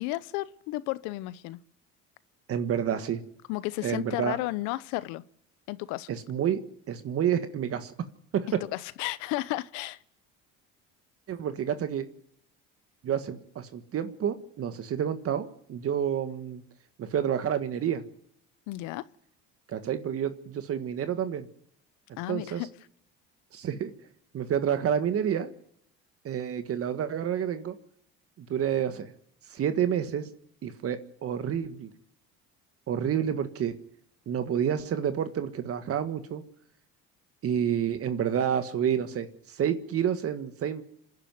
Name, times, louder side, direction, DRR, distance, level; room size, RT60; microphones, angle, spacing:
voice 1, 0.0-1.6 3.5-5.2 5.7-6.1 8.5-10.0 18.7-19.1 22.2-22.7, left 18 dB, 80° left, 0.8 m, -33 dB
voice 2, 2.5-3.2 3.8-4.4 6.1-6.6 6.9-7.9 8.3-8.6 11.3-12.0 13.0-16.6 17.0-18.0 19.7-21.5 22.3-22.6 23.5-23.9 24.3-25.5 26.2-27.7 28.4-29.1 29.5-30.3 30.6-31.9 32.9-33.7 34.3-36.4 37.4-40.8, right 9 dB, 50° right, 1.6 m, -29 dB
26.5 x 11.0 x 9.4 m
supercardioid pair, 85°, 29 cm